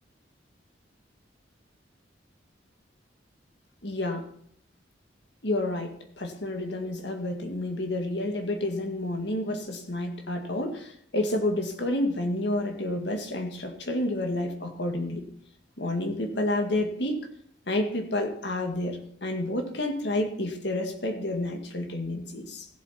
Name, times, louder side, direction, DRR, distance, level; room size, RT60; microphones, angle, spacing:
voice 1, 3.8-4.3 5.4-15.3 15.8-17.3 17.7-22.7, left 1 dB, 65° left, 5 dB, 2.0 m, -30 dB
16.0 x 7.7 x 4.3 m, 0.68 s
head